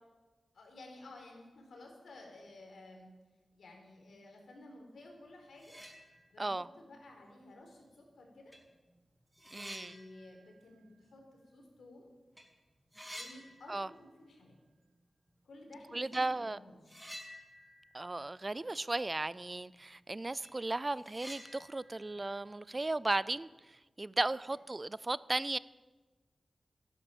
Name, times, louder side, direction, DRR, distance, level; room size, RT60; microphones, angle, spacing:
voice 1, 0.5-3.1 3.5-5.8 6.3-8.6 9.5-12.1 13.1-14.6 15.4-17.0, left 2 dB, 85° left, 1 dB, 4.3 m, -54 dB
sound 1, 5.2-5.3 5.5-6.6 7.0-7.1 8.0-8.1 8.5-12.0 12.2-12.5 12.7-14.3 14.5-14.6 16.1-16.3 16.9-19.0 19.3-19.4 19.8-19.9 20.2-23.4, equal, 5° right, 2.4 m, -52 dB
voice 2, 9.5-10.0 13.7-13.9 15.9-16.6 17.9-25.6, right 2 dB, 20° right, 19 dB, 0.4 m, -35 dB
15.0 x 11.0 x 7.2 m, 1.2 s
wide cardioid pair, 160°, 0 cm